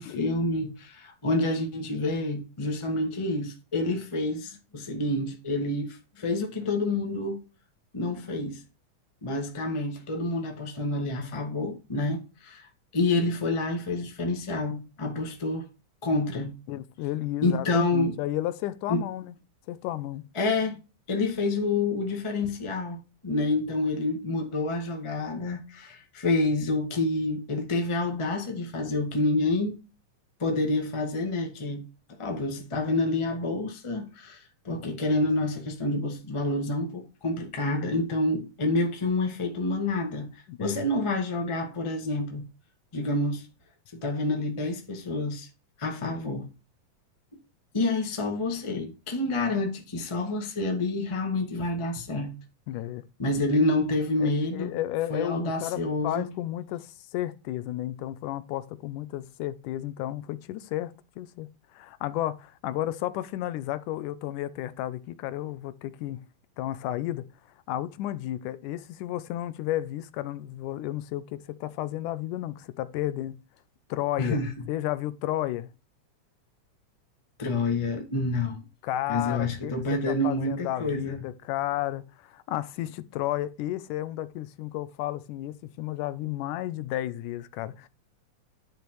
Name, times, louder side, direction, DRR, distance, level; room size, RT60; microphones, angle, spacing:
voice 1, 0.0-7.4 7.9-8.6 9.2-15.7 16.0-16.5 17.4-18.1 18.9-19.0 20.3-20.8 21.1-29.8 30.4-31.9 32.2-40.3 40.6-42.4 42.9-43.5 43.9-45.5 45.8-46.5 47.7-52.3 53.2-54.7 55.1-56.3 74.2-74.5 77.4-78.6 79.1-81.2, left 2 dB, 15° left, 0.9 m, -28 dB
voice 2, 16.7-19.3 19.7-20.3 40.5-40.9 52.7-53.0 54.2-66.3 66.6-67.3 67.7-73.4 73.9-75.7 78.8-87.9, left 14 dB, 85° left, 2.2 m, -32 dB
10.5 x 5.2 x 4.5 m
omnidirectional pair, 3.6 m